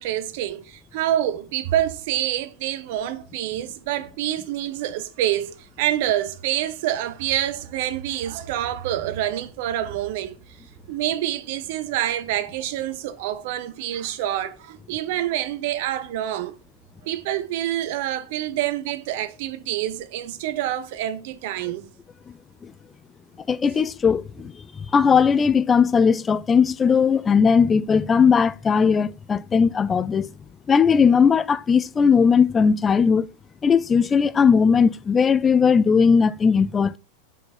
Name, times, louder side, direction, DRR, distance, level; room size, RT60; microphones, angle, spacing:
voice 1, 0.0-10.4 10.9-16.6 17.0-21.9, right 12 dB, 50° right, 0.7 m, -27 dB
voice 2, 23.5-24.5 24.9-30.3 30.7-33.3 33.6-37.0, left 6 dB, 20° left, 0.3 m, -18 dB
5.3 x 4.1 x 4.2 m
figure-of-eight pair, 90°, 0 cm